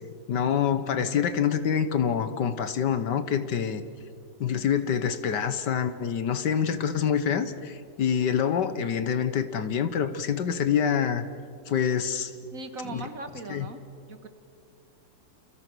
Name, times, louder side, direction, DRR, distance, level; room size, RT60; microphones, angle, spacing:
voice 1, 0.3-3.8 4.4-11.2 11.7-12.3 12.9-13.0 13.5-13.7, left 8 dB, 70° left, 11 dB, 1.7 m, -26 dB
voice 2, 12.5-13.8 14.1-14.3, right 2 dB, 50° right, 8 dB, 2.0 m, -39 dB
29.5 x 27.5 x 6.2 m, 2.3 s
omnidirectional pair, 2.0 m